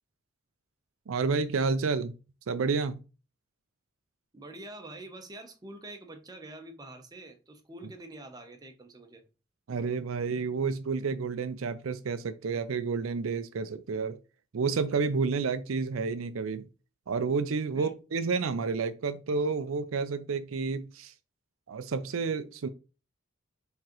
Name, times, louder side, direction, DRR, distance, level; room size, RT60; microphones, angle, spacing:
voice 1, 1.1-2.1 2.5-3.0 9.7-14.2 14.5-16.7 17.1-21.1 21.7-22.7, right 4 dB, 80° right, 0.5 m, -30 dB
voice 2, 4.3-9.2 17.6-17.9, right 1 dB, 20° right, 0.8 m, -46 dB
4.7 x 3.7 x 3.0 m
head